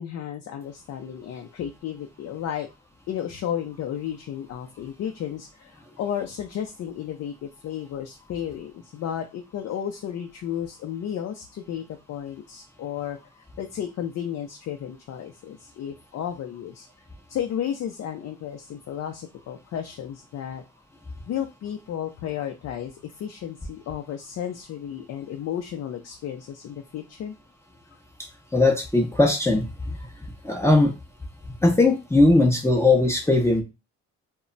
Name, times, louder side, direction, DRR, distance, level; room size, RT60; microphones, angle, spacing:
voice 1, 0.0-2.7 3.1-13.2 13.6-16.9 17.3-20.6 21.3-27.4, left 9 dB, 55° left, 4 dB, 0.5 m, -33 dB
voice 2, 28.5-29.7 30.4-30.9 31.6-33.6, left 2 dB, 10° left, 1 dB, 0.5 m, -19 dB
2.2 x 2.0 x 3.8 m, 0.25 s
cardioid pair, 90°, 30 cm